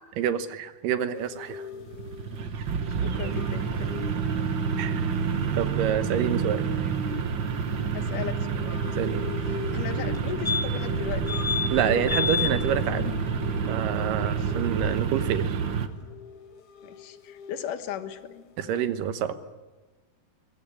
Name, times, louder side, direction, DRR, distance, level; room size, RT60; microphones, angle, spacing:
voice 1, 0.2-1.6 4.8-5.0 5.6-6.6 9.0-9.3 11.7-13.0 13.6-15.6 18.6-19.4, right 9 dB, 85° right, 11 dB, 2.8 m, -27 dB
sound 1, 1.1-18.9, left 7 dB, 55° left, 1.9 m, -42 dB
sound 2, 1.7-15.9, right 6 dB, 55° right, 1.4 m, -28 dB
voice 2, 2.9-3.9 5.2-5.3 7.9-8.8 9.4-11.4 14.2-14.5 16.8-18.3, left 9 dB, 75° left, 9 dB, 2.9 m, -37 dB
sound 3, 10.1-10.2 10.4-10.9 11.3-11.7 12.1-12.5 14.9-15.0 15.2-15.3, left 6 dB, 5° left, 0.3 m, -28 dB
22.5 x 21.5 x 9.9 m, 1.2 s
omnidirectional pair, 3.8 m